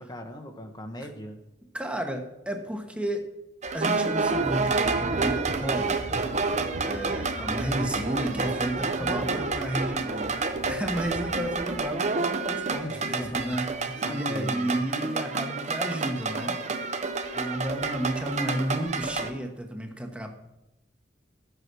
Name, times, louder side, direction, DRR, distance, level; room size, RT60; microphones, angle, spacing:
voice 1, 0.0-1.4 7.9-10.0 12.8-13.6 14.0-14.7, equal, 25° left, 4 dB, 1.0 m, -40 dB
voice 2, 1.7-3.3 3.7-6.1 6.7-10.4 10.7-16.6 17.3-20.4, right 1 dB, 5° right, 4 dB, 1.2 m, -32 dB
sound 1, 3.6-19.3, right 3 dB, 40° right, 0.9 m, -29 dB
13.0 x 8.2 x 6.2 m, 0.94 s
head